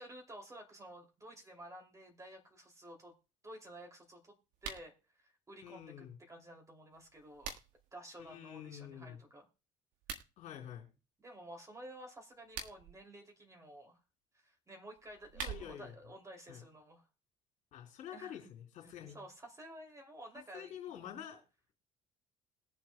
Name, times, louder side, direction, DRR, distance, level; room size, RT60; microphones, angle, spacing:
voice 1, 0.0-3.1 3.4-4.4 4.6-4.9 5.2-7.5 7.9-9.5 11.2-14.0 14.3-17.0 18.1-18.4 19.1-20.9, right 1 dB, 20° right, 2 dB, 2.8 m, -52 dB
sound 1, 4.5-4.9 6.9-7.9 9.9-10.3 12.3-13.0 15.0-15.9, right 6 dB, 60° right, 1.6 m, -45 dB
voice 2, 5.6-6.2 8.2-9.2 10.4-10.9 15.3-16.0 16.5-16.6 17.7-19.2 20.5-21.4, left 10 dB, 50° left, 0 dB, 3.4 m, -48 dB
21.0 x 7.3 x 2.2 m, 0.30 s
figure-of-eight pair, 55°, 16 cm